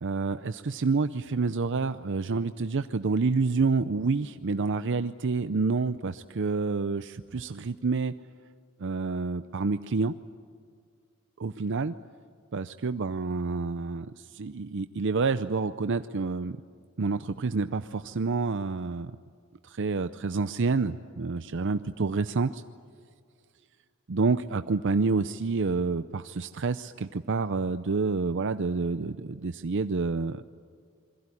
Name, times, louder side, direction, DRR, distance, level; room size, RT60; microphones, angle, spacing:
voice 1, 0.0-8.1 8.8-10.1 11.4-11.9 12.5-16.6 17.0-19.1 19.6-22.6 24.1-30.4, right 4 dB, 60° right, 11 dB, 0.6 m, -28 dB
27.5 x 22.0 x 9.8 m, 2.1 s
head